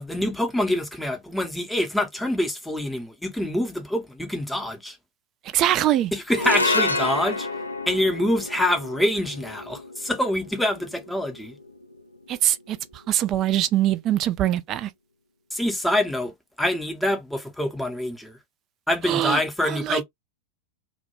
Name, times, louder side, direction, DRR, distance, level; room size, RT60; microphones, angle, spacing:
voice 1, 0.0-5.0 6.1-7.5 7.9-11.6 15.5-16.3 16.6-18.4 18.9-20.0, left 1 dB, 5° left, 0.6 m, -25 dB
voice 2, 5.5-6.1 12.3-14.9 19.0-20.0, right 12 dB, 35° right, 0.3 m, -23 dB
sound 1, 6.3-12.8, left 2 dB, 85° left, 0.4 m, -30 dB
2.2 x 2.1 x 2.8 m
figure-of-eight pair, 90°, 0 cm